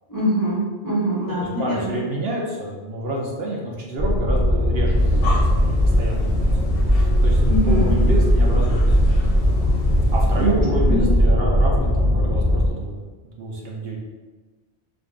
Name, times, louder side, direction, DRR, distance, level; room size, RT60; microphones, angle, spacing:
voice 1, 0.1-2.0 7.5-7.9 10.4-11.1, right 1 dB, 20° left, -8 dB, 0.9 m, -23 dB
voice 2, 1.2-6.5 7.2-9.0 10.1-13.0 13.4-14.0, right 1 dB, 65° right, -2 dB, 0.8 m, -28 dB
sound 1, 4.0-12.7, equal, 5° right, 0.5 m, -18 dB
Breathing, 4.8-10.6, left 2 dB, 60° left, 0.9 m, -31 dB
4.9 x 2.5 x 2.4 m, 1.3 s
omnidirectional pair, 1.1 m